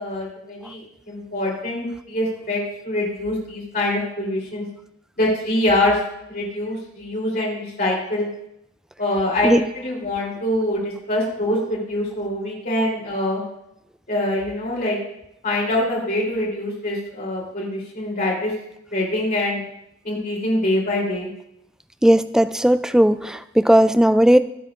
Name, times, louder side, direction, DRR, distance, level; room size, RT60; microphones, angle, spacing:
voice 1, 0.0-4.6 5.2-6.0 6.3-8.3 9.0-13.4 14.1-15.0 15.4-18.5 18.9-19.6 20.0-21.3, left 1 dB, 45° left, -4 dB, 3.4 m, -24 dB
voice 2, 22.0-24.4, equal, 5° right, 12 dB, 0.3 m, -16 dB
24.0 x 8.0 x 2.5 m, 0.81 s
head